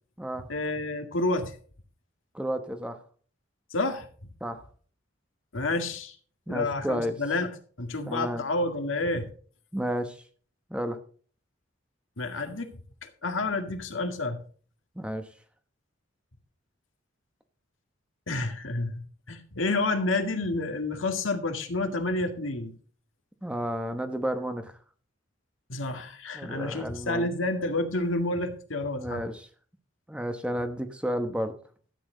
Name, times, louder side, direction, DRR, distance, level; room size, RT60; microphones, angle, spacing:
voice 1, 0.5-1.5 3.7-4.1 5.5-6.2 6.5-7.5 7.8-9.2 12.2-12.7 13.0-14.4 18.3-22.7 25.7-29.2, left 2 dB, 85° left, 5 dB, 1.9 m, -29 dB
voice 2, 2.3-3.0 4.4-4.6 6.5-7.2 8.1-8.4 9.7-10.2 10.7-11.0 15.0-15.3 23.4-24.7 26.3-27.3 28.9-29.4 30.1-31.5, equal, 5° right, 7 dB, 1.0 m, -31 dB
13.0 x 8.7 x 3.9 m, 0.43 s
head